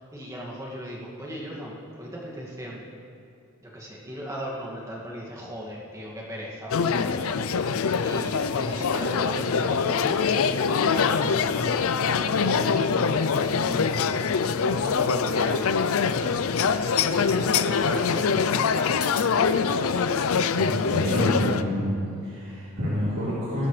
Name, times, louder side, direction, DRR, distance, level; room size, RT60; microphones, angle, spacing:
voice 1, 0.0-2.8 3.6-10.4 10.7-18.8 22.6-22.7, equal, 15° right, -4 dB, 2.1 m, -38 dB
sound 1, 6.7-21.6, left 5 dB, 75° left, 0.5 m, -24 dB
voice 2, 20.6-22.0 22.2-23.7, equal, 70° right, -12 dB, 3.7 m, -27 dB
21.0 x 12.0 x 3.3 m, 2.6 s
head